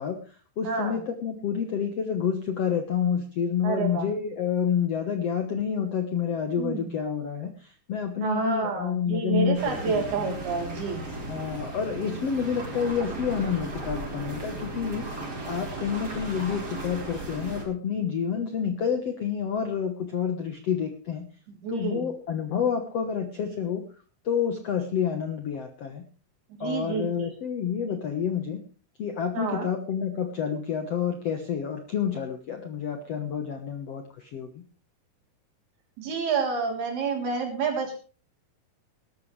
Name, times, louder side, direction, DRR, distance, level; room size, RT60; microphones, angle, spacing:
voice 1, 0.0-10.3 11.3-15.0 15.5-21.2 21.7-23.8 24.2-26.0 26.6-28.6 29.0-34.6, left 7 dB, 65° left, 6 dB, 1.6 m, -29 dB
voice 2, 0.6-1.0 3.6-4.1 6.6-6.9 8.2-11.1 21.6-22.1 26.6-27.3 29.3-29.7 36.0-38.0, right 5 dB, 75° right, 1 dB, 5.5 m, -29 dB
sound 1, 9.5-17.6, right 2 dB, 25° right, 4.8 m, -36 dB
20.0 x 12.5 x 3.3 m, 0.38 s
omnidirectional pair, 4.6 m